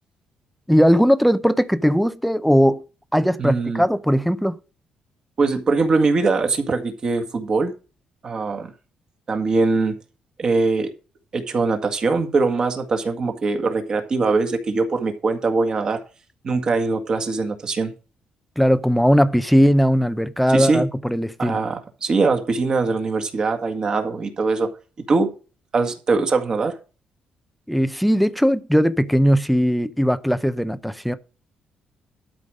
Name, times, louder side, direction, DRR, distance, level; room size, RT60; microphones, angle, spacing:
voice 1, 0.7-2.8 3.1-4.6 18.6-21.6 27.7-31.2, equal, ahead, 0.6 m, -18 dB
voice 2, 3.4-3.8 5.4-7.7 8.2-8.7 9.3-9.9 10.4-10.9 11.3-16.0 16.4-17.9 20.5-20.8 21.4-24.7 25.1-25.3 25.7-26.8, right 3 dB, 30° right, 1.8 m, -22 dB
12.5 x 5.1 x 6.3 m
cardioid pair, 180°, 3 cm